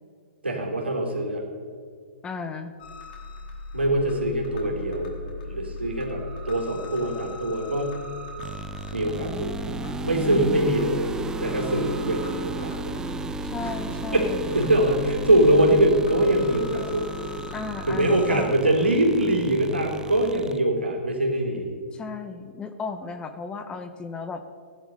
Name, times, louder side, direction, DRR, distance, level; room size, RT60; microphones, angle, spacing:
voice 1, 0.4-1.4 3.7-5.1 5.4-8.0 8.9-9.5 10.0-11.1 11.4-13.0 13.6-13.7 14.1-17.1 17.9-21.7, right 1 dB, 90° right, 0 dB, 3.6 m, -23 dB
voice 2, 2.2-2.7 10.2-10.8 13.4-14.5 17.5-18.6 21.9-24.4, left 4 dB, 15° left, 9 dB, 1.0 m, -34 dB
sound 1, 2.8-18.4, left 2 dB, 50° left, 3.4 m, -38 dB
sound 2, 8.4-20.6, right 4 dB, 10° right, 0.5 m, -35 dB
16.5 x 11.0 x 5.5 m, 2.1 s
figure-of-eight pair, 115°, 6 cm